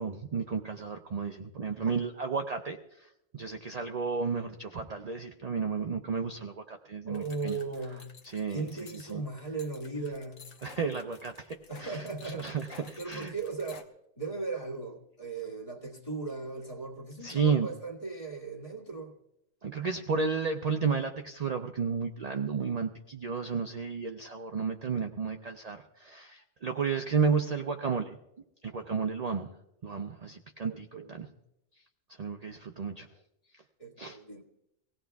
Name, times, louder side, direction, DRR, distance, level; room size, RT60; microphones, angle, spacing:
voice 1, 0.0-3.1 3.3-7.6 8.3-8.7 9.1-9.2 10.6-13.3 17.2-17.7 19.6-28.2 28.6-29.5 29.8-31.3 32.2-33.1 34.0-34.2, right 5 dB, 55° right, 5 dB, 0.4 m, -32 dB
voice 2, 7.0-8.1 8.5-10.5 11.7-12.5 13.0-13.9 14.2-19.1 30.7-31.4 33.8-34.4, right 3 dB, 25° left, -1 dB, 1.8 m, -38 dB
sound 1, 7.1-13.8, left 5 dB, 65° left, 1.4 m, -52 dB
24.5 x 17.0 x 2.3 m, 0.84 s
omnidirectional pair, 1.5 m